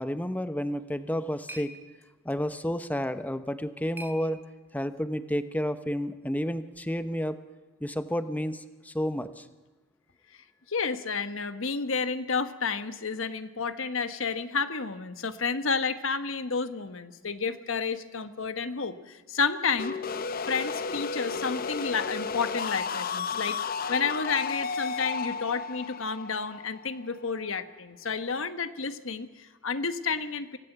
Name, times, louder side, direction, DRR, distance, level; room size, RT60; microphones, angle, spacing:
voice 1, 0.0-1.7 2.2-4.4 4.7-7.4 7.8-9.5, equal, 10° left, 10 dB, 0.9 m, -31 dB
sound 1, 0.7-5.0, right 1 dB, 10° right, 1.6 m, -50 dB
voice 2, 10.7-20.0 20.5-23.6 23.9-30.6, left 5 dB, 75° left, 10 dB, 1.2 m, -31 dB
sound 2, 19.8-27.5, left 5 dB, 45° left, 0.6 m, -33 dB
25.5 x 17.0 x 8.1 m, 1.2 s
head